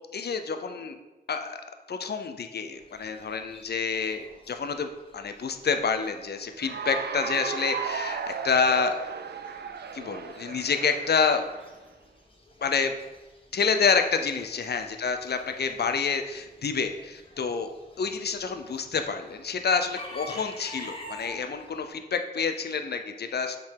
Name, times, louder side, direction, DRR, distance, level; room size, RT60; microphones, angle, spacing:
voice 1, 0.1-1.0 1.3-1.6 1.9-4.9 5.1-9.0 9.9-11.4 12.6-12.9 13.5-17.7 18.0-23.6, left 5 dB, 75° left, 7 dB, 0.5 m, -28 dB
Chicken rooster / Bird, 2.7-21.9, left 1 dB, 35° left, 1.2 m, -50 dB
Cheering / Applause, 6.5-11.7, right 6 dB, 80° right, 0.4 m, -35 dB
7.4 x 3.8 x 4.6 m, 1.1 s
wide cardioid pair, 90°, 17 cm